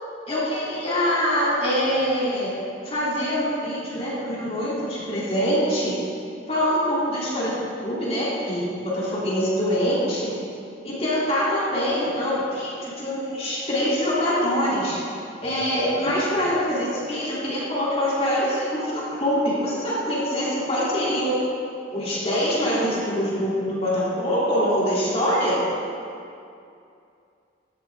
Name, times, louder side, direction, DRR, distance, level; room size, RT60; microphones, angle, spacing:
voice 1, 0.3-2.5 2.8-5.9 6.5-7.5 7.8-10.3 10.8-15.0 15.4-21.4 21.9-25.6, equal, 30° left, -8 dB, 3.6 m, -24 dB
15.0 x 13.5 x 3.9 m, 2.5 s
head